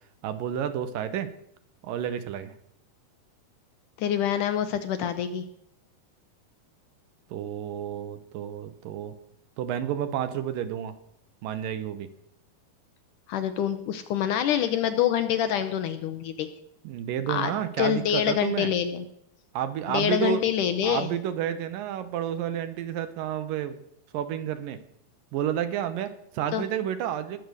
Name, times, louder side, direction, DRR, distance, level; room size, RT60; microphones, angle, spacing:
voice 1, 0.2-1.3 1.8-2.5 7.3-9.1 9.6-10.9 11.4-12.1 16.8-18.7 19.5-20.4 20.8-23.8 24.1-24.8 25.3-27.4, right 10 dB, 75° right, 11 dB, 2.5 m, -30 dB
voice 2, 4.0-5.4 13.3-16.5 17.3-19.0 19.9-21.1 26.5-26.6, left 9 dB, 70° left, 9 dB, 2.1 m, -26 dB
20.0 x 7.2 x 6.4 m, 0.75 s
omnidirectional pair, 4.2 m